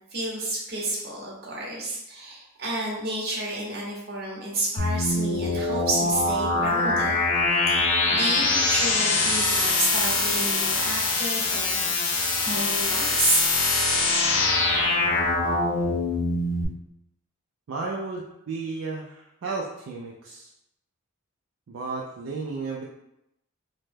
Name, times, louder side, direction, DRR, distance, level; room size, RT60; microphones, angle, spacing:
voice 1, 0.1-7.2 7.7-7.8 8.1-11.8 12.5-13.5, right 2 dB, 45° right, -4 dB, 0.8 m, -30 dB
sound 1, 4.8-16.6, left 3 dB, 60° left, 0.6 m, -23 dB
voice 2, 17.7-20.5 21.7-22.8, right 3 dB, 65° right, -3 dB, 0.3 m, -33 dB
2.9 x 2.0 x 3.4 m, 0.84 s
head